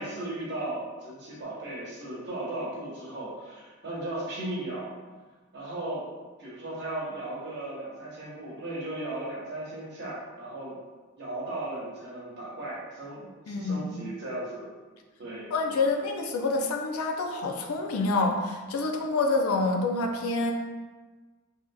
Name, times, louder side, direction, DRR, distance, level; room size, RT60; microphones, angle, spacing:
voice 1, 0.0-4.9 5.5-6.0 6.4-10.7 11.2-14.7 15.2-15.5, right 1 dB, 50° right, -7 dB, 0.9 m, -36 dB
voice 2, 13.5-13.8 15.5-20.5, left 3 dB, 75° left, 3 dB, 0.4 m, -27 dB
3.3 x 2.8 x 2.2 m, 1.3 s
head